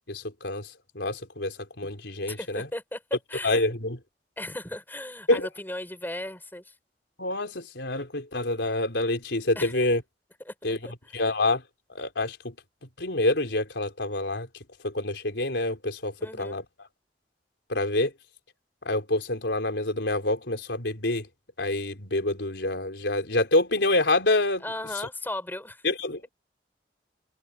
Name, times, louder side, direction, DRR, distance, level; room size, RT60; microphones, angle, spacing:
voice 1, 0.1-0.7 0.9-2.7 3.4-4.0 5.3-5.5 7.2-10.0 10.6-10.8 11.1-11.6 11.9-12.5 13.0-14.5 14.8-16.6 17.7-18.1 18.8-21.3 21.6-24.6 25.8-26.2, left 2 dB, 90° left, 4.3 m, -27 dB
voice 2, 2.3-3.0 3.3-3.6 4.4-6.7 9.5-9.7 10.4-10.5 10.8-11.2 16.2-16.6 24.6-25.9, left 1 dB, 10° left, 5.1 m, -36 dB
head